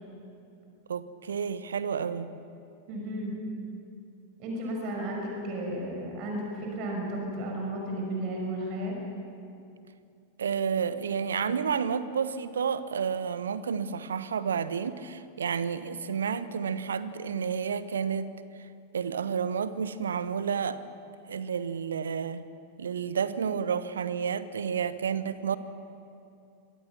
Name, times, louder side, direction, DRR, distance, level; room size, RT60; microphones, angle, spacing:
voice 1, 0.9-2.3 10.4-18.3 18.9-20.8 21.3-22.4 22.8-25.6, right 7 dB, 70° right, 14 dB, 1.1 m, -30 dB
voice 2, 2.9-3.4 4.4-9.0, right 1 dB, 40° right, 0 dB, 6.2 m, -33 dB
26.5 x 24.0 x 6.1 m, 2.6 s
figure-of-eight pair, 90°, 0 cm